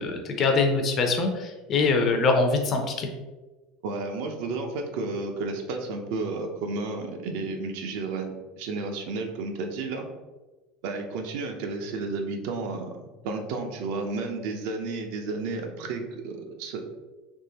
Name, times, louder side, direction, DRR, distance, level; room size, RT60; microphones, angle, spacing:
voice 1, 0.0-3.1, left 3 dB, 30° left, 4 dB, 0.4 m, -23 dB
voice 2, 3.8-10.1 10.8-16.8, right 3 dB, 65° right, 4 dB, 0.5 m, -32 dB
3.6 x 2.9 x 2.8 m, 1.2 s
cardioid pair, 165°, 0 cm